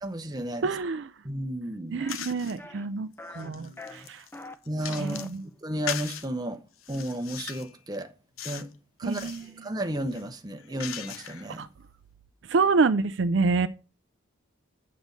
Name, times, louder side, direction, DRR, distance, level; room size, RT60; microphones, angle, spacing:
voice 1, 0.0-0.7 1.2-2.1 3.4-3.8 4.7-5.2 5.6-6.6 6.9-8.1 8.4-8.7 9.0-9.3 9.6-11.7, right 1 dB, 20° right, 0.8 m, -33 dB
voice 2, 0.6-1.1 1.9-3.1 3.4-4.2 5.0-5.5 9.0-9.7 11.6-11.7 12.5-13.7, right 4 dB, 60° right, 0.4 m, -27 dB
sound 1, 2.0-2.1 2.6-2.9 3.2-3.5 3.8-4.5 4.9-5.3, left 2 dB, 10° left, 0.6 m, -42 dB
sound 2, 2.1-2.6 3.1-5.4 5.9-6.3 6.8-7.7 8.4-8.7 9.0-9.5 10.1-11.5, left 9 dB, 90° left, 0.8 m, -39 dB
8.4 x 6.2 x 5.2 m
head